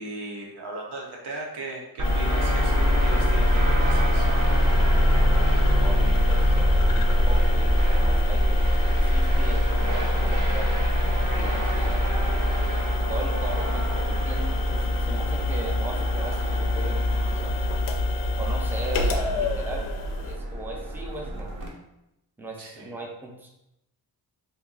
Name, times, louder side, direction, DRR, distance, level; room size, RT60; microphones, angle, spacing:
voice 1, 0.0-4.3 22.6-23.0, right 2 dB, 85° right, -1 dB, 0.9 m, -37 dB
sound 1, 2.0-20.4, left 3 dB, 55° left, 0.4 m, -27 dB
sound 2, 2.0-21.7, equal, 55° right, 0.7 m, -24 dB
voice 2, 5.8-8.4 8.9-10.7 11.4-12.0 13.1-17.6 18.4-19.9 20.2-21.6 22.4-23.5, right 2 dB, 5° right, 0 dB, 0.4 m, -38 dB
2.7 x 2.3 x 3.7 m, 0.86 s
wide cardioid pair, 130°, 40 cm